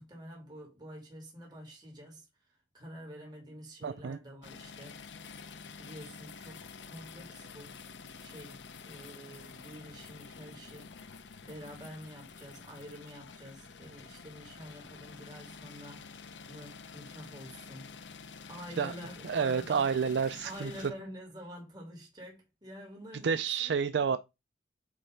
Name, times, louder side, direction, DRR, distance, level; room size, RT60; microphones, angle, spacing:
voice 1, 0.0-5.0 5.8-7.7 8.1-8.6 8.8-11.0 11.4-16.1 16.5-17.9 18.5-19.9 20.4-23.7 24.0-24.2, equal, 25° right, 2.6 m, -48 dB
voice 2, 3.8-4.2 18.8-18.9 19.2-20.7 23.2-24.2, right 6 dB, 70° right, 0.4 m, -29 dB
sound 1, 4.4-20.9, left 5 dB, 75° left, 0.7 m, -49 dB
8.6 x 3.3 x 5.1 m
head